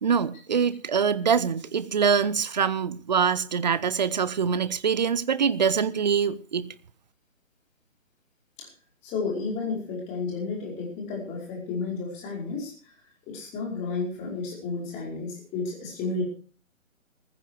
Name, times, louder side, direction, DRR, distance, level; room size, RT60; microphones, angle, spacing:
voice 1, 0.0-6.7, right 6 dB, 35° right, 0.7 m, -24 dB
voice 2, 9.0-12.7 13.3-16.2, left 4 dB, 15° left, 5.1 m, -32 dB
15.0 x 14.5 x 4.8 m
figure-of-eight pair, 140°, 40 cm